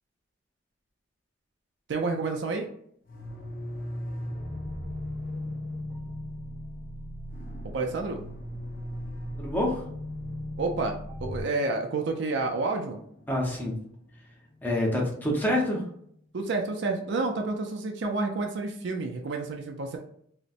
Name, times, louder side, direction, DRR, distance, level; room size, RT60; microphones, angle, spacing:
voice 1, 1.9-2.7 7.7-8.2 10.6-13.0 16.3-20.0, right 3 dB, 60° right, 3 dB, 0.4 m, -29 dB
sound 1, 3.1-15.8, left 1 dB, 45° left, 0.5 m, -40 dB
sound 2, 4.3-11.4, right 1 dB, 15° right, 0.9 m, -42 dB
voice 2, 9.4-9.8 13.3-13.8 14.6-15.8, left 1 dB, 10° left, -2 dB, 0.8 m, -26 dB
3.9 x 2.1 x 2.5 m, 0.66 s
head